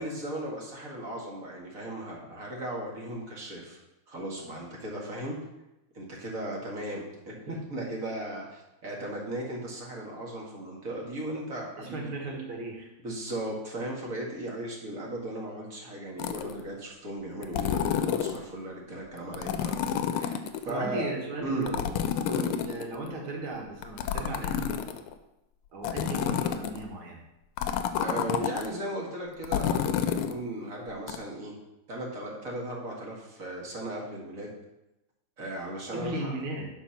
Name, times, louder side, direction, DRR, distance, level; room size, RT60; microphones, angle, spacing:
voice 1, 0.0-3.8 4.1-5.4 5.9-12.1 13.0-21.0 21.4-21.7 22.3-22.5 28.0-31.6 31.9-34.5 35.4-36.3, right 1 dB, 40° right, -2 dB, 2.2 m, -36 dB
voice 2, 11.8-12.9 20.7-21.9 22.6-24.8 25.7-27.2 35.9-36.7, right 2 dB, 75° right, -1 dB, 2.6 m, -36 dB
sound 1, 16.2-16.6 17.4-18.4 19.3-20.7 21.7-23.1 23.8-25.1 25.8-26.8 27.6-28.7 29.4-30.4 31.1-31.2, left 8 dB, 90° left, 1.5 m, -29 dB
10.5 x 4.3 x 5.7 m, 0.93 s
omnidirectional pair, 2.3 m